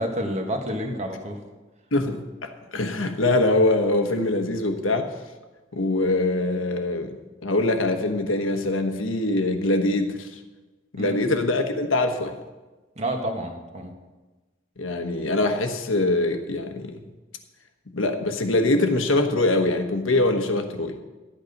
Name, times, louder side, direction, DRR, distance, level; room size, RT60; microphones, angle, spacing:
voice 1, 0.0-1.4 11.0-11.2 12.9-13.9, equal, 35° right, 3 dB, 1.4 m, -29 dB
voice 2, 1.9-5.1 5.7-7.1 7.4-10.4 10.9-12.4 14.8-17.0 17.9-20.9, left 2 dB, 85° left, 6 dB, 1.2 m, -23 dB
12.0 x 8.7 x 5.3 m, 1.2 s
head